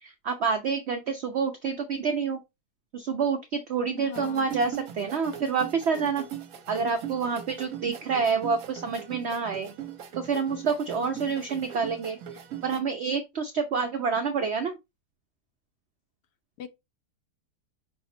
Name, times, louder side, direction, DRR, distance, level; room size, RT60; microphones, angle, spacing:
voice 1, 0.0-2.4 2.9-6.2 6.7-9.7 10.1-14.8, right 5 dB, 75° right, 0.6 m, -28 dB
voice 2, 4.0-4.5 11.0-11.4 16.6-16.7, left 10 dB, 75° left, 1.1 m, -41 dB
sound 1, 4.1-12.8, right 9 dB, 60° right, 1.0 m, -40 dB
5.6 x 2.0 x 4.2 m
omnidirectional pair, 1.8 m